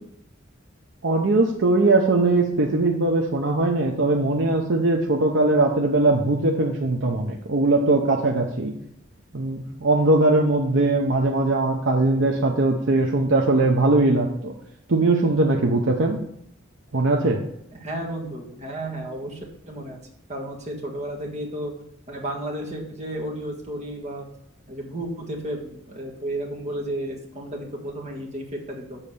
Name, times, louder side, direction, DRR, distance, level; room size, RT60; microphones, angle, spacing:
voice 1, 1.0-8.7 9.3-14.5 14.9-16.2 16.9-17.4, right 2 dB, 65° right, 1 dB, 0.8 m, -20 dB
voice 2, 17.7-19.4 19.7-20.0 20.3-21.7 22.1-24.3 24.7-29.0, right 1 dB, 35° right, 0 dB, 1.7 m, -32 dB
7.4 x 4.1 x 6.6 m, 0.74 s
head